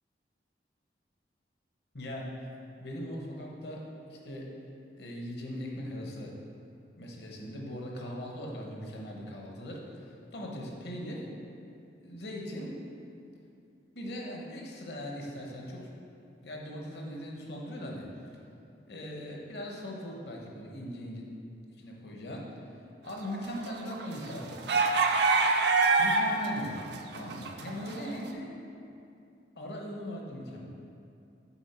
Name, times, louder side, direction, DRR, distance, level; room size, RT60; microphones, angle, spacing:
voice 1, 1.9-2.3 2.8-4.5 5.0-6.3 7.0-11.3 12.0-12.8 13.9-15.9 16.4-18.1 18.9-21.3 21.8-22.5 23.0-24.7 26.0-26.9 27.1-28.5 29.6-30.7, equal, 65° left, -1 dB, 1.0 m, -40 dB
sound 1, 23.2-26.5 26.8-28.1, right 3 dB, 70° right, 0.5 m, -25 dB
7.0 x 4.5 x 4.3 m, 2.6 s
head